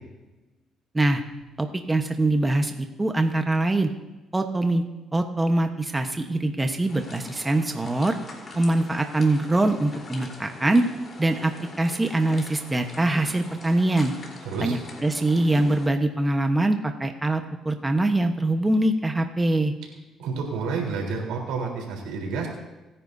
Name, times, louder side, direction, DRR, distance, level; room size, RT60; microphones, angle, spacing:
voice 1, 1.6-3.9 4.3-4.8 5.1-8.1 8.5-10.8 11.2-11.5 11.8-14.1 14.6-19.7, right 2 dB, 20° right, 5 dB, 1.1 m, -23 dB
sound 1, 6.9-15.9, left 3 dB, 40° left, 3.7 m, -43 dB
voice 2, 14.4-14.8 20.2-22.5, right 4 dB, 85° right, 0 dB, 3.7 m, -29 dB
26.5 x 10.0 x 2.7 m, 1.1 s
cardioid pair, 80°, 0 cm